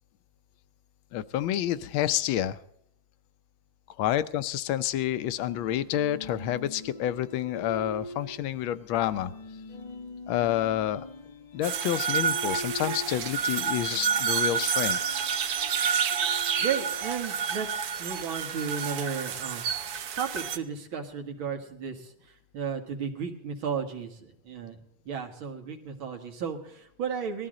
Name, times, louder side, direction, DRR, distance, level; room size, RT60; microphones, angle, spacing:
voice 1, 1.1-2.6 4.0-9.3 10.3-11.1 11.5-15.0, left 12 dB, 80° left, 14 dB, 1.5 m, -29 dB
sound 1, 5.3-20.4, left 1 dB, 35° left, 0.7 m, -44 dB
sound 2, 11.6-20.6, right 7 dB, 60° right, 1.1 m, -29 dB
voice 2, 16.6-19.6 20.1-22.1 22.5-24.8 25.1-27.5, right 6 dB, 80° right, 4 dB, 2.5 m, -34 dB
19.0 x 13.0 x 3.8 m, 0.75 s
omnidirectional pair, 2.2 m